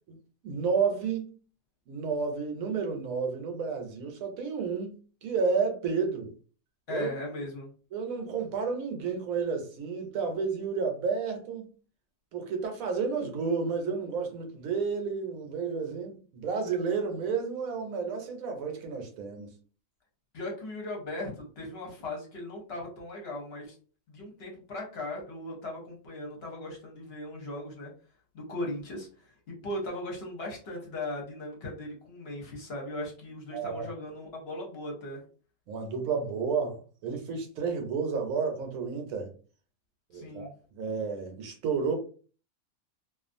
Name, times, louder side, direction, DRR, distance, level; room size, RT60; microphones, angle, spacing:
voice 1, 0.4-1.4 1.9-6.3 6.9-7.1 7.9-11.7 12.3-19.5 33.5-33.9 35.7-39.3 40.1-41.9, right 5 dB, 75° right, 1.1 m, -31 dB
voice 2, 6.9-7.7 20.3-23.7 24.1-27.9 28.3-35.2 40.1-40.5, left 1 dB, 50° left, 0.9 m, -38 dB
2.4 x 2.4 x 2.5 m
omnidirectional pair, 1.5 m